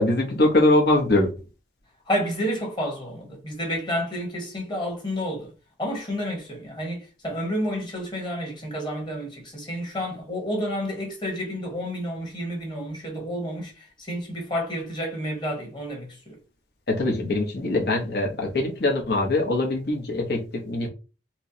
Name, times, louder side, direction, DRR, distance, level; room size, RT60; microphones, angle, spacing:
voice 1, 0.0-1.3 16.9-20.9, left 2 dB, 60° left, 0.8 m, -22 dB
voice 2, 2.1-5.5 5.8-16.4, equal, 25° left, 1.2 m, -30 dB
4.3 x 2.1 x 2.7 m
head